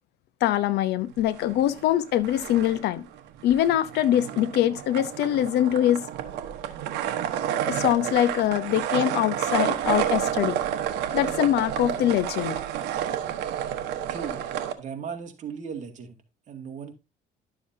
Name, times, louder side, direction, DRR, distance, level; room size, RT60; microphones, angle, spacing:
voice 1, 0.4-3.1 3.4-6.1 7.7-10.6 11.1-12.6, left 12 dB, 80° left, 0.8 m, -23 dB
sound 1, 1.2-2.0 2.2-14.7, right 10 dB, 85° right, 1.1 m, -30 dB
voice 2, 14.1-14.4 14.8-16.9, right 6 dB, 45° right, 2.1 m, -37 dB
11.5 x 7.0 x 2.7 m
cardioid pair, 110°, 17 cm